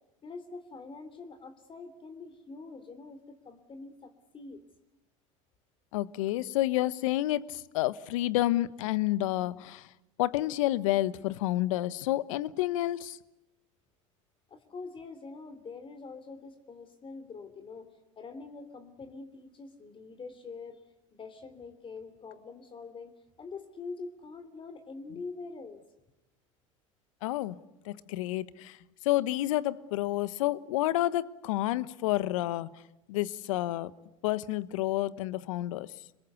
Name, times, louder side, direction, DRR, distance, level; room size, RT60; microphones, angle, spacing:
voice 1, 0.2-4.6 14.5-20.8 21.1-23.1 23.4-25.8, left 4 dB, 30° left, 3.3 m, -44 dB
voice 2, 5.9-9.9 10.2-13.2 27.2-27.6 27.8-28.8 29.0-32.7 33.1-33.9 34.2-35.9, left 15 dB, 75° left, 1.1 m, -29 dB
27.0 x 22.0 x 8.3 m
hypercardioid pair, 85°, 17 cm